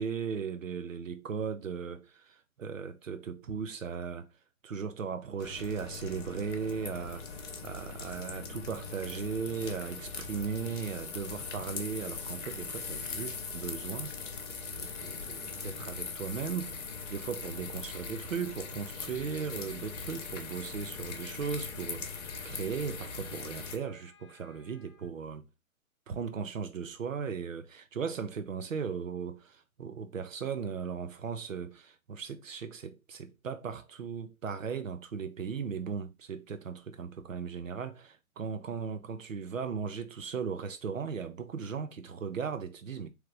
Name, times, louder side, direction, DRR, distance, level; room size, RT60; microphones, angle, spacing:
voice 1, 0.0-4.3 4.6-14.2 14.7-16.7 17.1-25.5 26.1-43.1, right 6 dB, 60° right, 0.8 m, -37 dB
sound 1, 5.4-23.8, left 5 dB, 55° left, 0.9 m, -41 dB
Wind instrument woodwind instrument, 19.4-25.1, left 5 dB, 20° left, 0.7 m, -63 dB
3.7 x 3.2 x 3.1 m
figure-of-eight pair, 135°, 44 cm